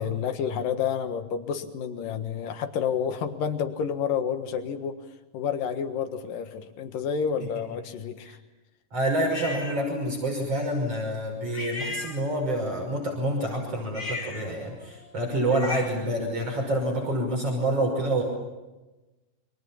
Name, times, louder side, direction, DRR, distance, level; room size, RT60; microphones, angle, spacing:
voice 1, 0.0-5.0 5.3-8.4, left 7 dB, 90° left, 8 dB, 3.2 m, -29 dB
voice 2, 8.9-18.2, right 1 dB, 45° right, 1 dB, 6.8 m, -27 dB
sound 1, 9.3-9.8 11.5-12.6 13.9-16.1, left 2 dB, 30° left, 3.0 m, -37 dB
29.5 x 26.0 x 7.3 m, 1.1 s
omnidirectional pair, 3.8 m